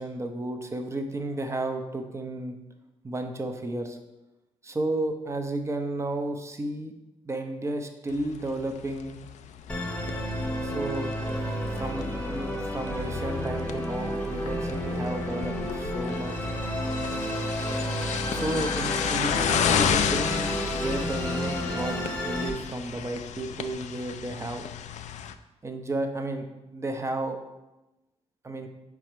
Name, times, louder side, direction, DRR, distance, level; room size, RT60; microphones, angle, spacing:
voice 1, 0.0-2.6 3.0-4.0 4.6-6.9 7.2-9.2 10.6-11.1 11.7-16.3 18.3-24.7 25.6-26.5 26.7-27.4 28.4-28.7, right 2 dB, 25° right, 5 dB, 0.7 m, -32 dB
sound 1, 8.1-25.3, left 8 dB, 80° left, 0.4 m, -33 dB
Musical instrument, 9.7-22.5, equal, 10° left, 1.0 m, -31 dB
4.9 x 4.8 x 4.5 m, 0.99 s
cardioid pair, 95°, 12 cm